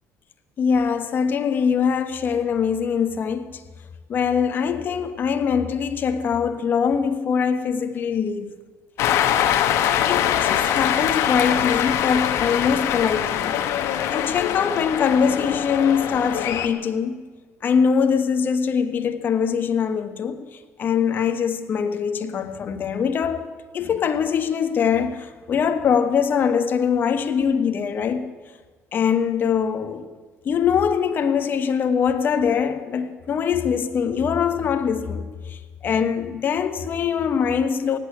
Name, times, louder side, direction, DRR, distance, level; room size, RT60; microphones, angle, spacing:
voice 1, 0.6-3.6 4.1-8.5 10.0-13.6 14.1-17.3 17.6-28.3 28.9-30.0 30.4-38.0, left 7 dB, 40° left, 1.2 m, -23 dB
Cheering, 9.0-16.7, left 10 dB, 70° left, 1.2 m, -23 dB
17.0 x 8.8 x 9.7 m
cardioid pair, 125°, 5 cm